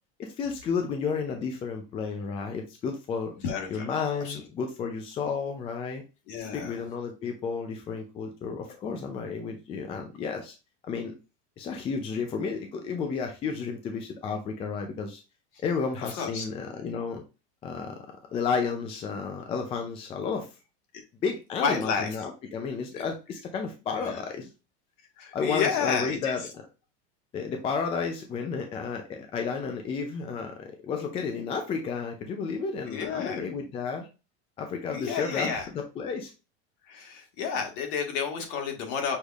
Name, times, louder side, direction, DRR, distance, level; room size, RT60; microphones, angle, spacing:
voice 1, 0.2-3.3 3.7-6.0 6.5-10.5 10.8-11.1 11.6-15.2 15.6-17.2 17.6-18.0 18.3-20.5 21.2-24.5 25.3-26.4 27.3-34.1 34.6-36.3, left 5 dB, 15° left, 4 dB, 0.4 m, -32 dB
voice 2, 3.4-3.9 4.2-4.4 6.3-6.8 16.1-16.4 21.6-22.1 22.9-23.0 24.0-24.2 25.2-26.5 32.9-33.4 34.9-35.7 36.9-39.2, left 6 dB, 55° left, 3 dB, 1.7 m, -30 dB
6.3 x 3.4 x 2.4 m, 0.30 s
supercardioid pair, 165°, 33 cm